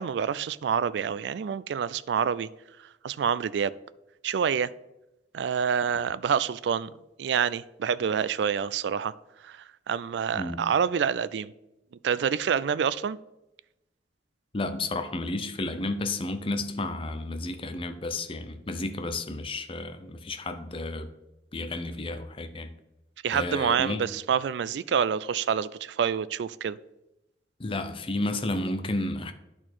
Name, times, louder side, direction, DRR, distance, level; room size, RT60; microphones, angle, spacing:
voice 1, 0.0-2.5 3.0-3.7 4.2-4.7 5.3-6.9 7.2-9.1 9.4-11.5 12.0-13.2 23.2-26.8, right 7 dB, 75° right, 0.3 m, -27 dB
voice 2, 10.3-10.7 14.5-21.1 21.5-22.7 23.3-24.1 27.6-29.3, left 2 dB, 30° left, 0.6 m, -32 dB
10.5 x 4.4 x 4.4 m
head